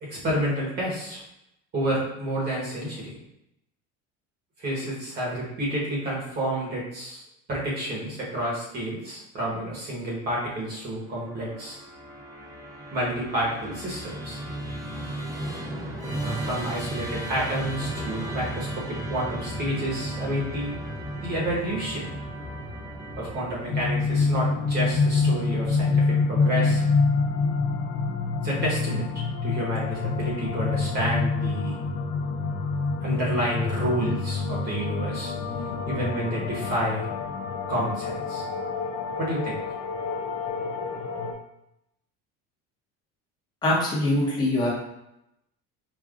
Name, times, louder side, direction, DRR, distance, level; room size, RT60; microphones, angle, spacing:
voice 1, 0.1-1.2 1.7-3.1 4.6-7.2 7.5-11.8 12.9-14.4 16.2-20.7 21.2-22.2 23.2-26.8 28.4-29.1 29.4-31.8 33.0-35.3 35.9-37.1 37.7-38.4 39.2-39.6, right 1 dB, 35° right, -5 dB, 1.1 m, -29 dB
Musical instrument, 11.1-26.4, right 1 dB, 10° right, 0.7 m, -35 dB
sound 1, 23.7-41.3, left 4 dB, 50° left, 0.4 m, -27 dB
voice 2, 43.6-44.7, left 1 dB, 15° left, -5 dB, 0.9 m, -23 dB
5.1 x 2.3 x 2.4 m, 0.84 s
cardioid pair, 160°, 29 cm